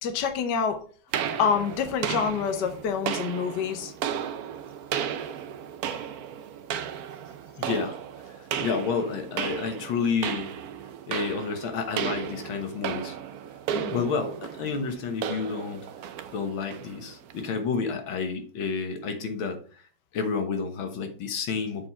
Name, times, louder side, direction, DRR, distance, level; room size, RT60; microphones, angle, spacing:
voice 1, 0.0-0.8 1.4-3.9 13.7-14.0, left 6 dB, 65° left, 6 dB, 1.5 m, -27 dB
sound 1, 1.1-17.5, right 8 dB, 65° right, 1.0 m, -34 dB
voice 2, 7.6-8.0 8.2-10.5 11.1-13.2 13.9-15.9 16.3-19.9 20.1-21.9, left 5 dB, 90° left, 6 dB, 2.0 m, -30 dB
7.2 x 4.7 x 4.3 m, 0.42 s
omnidirectional pair, 2.1 m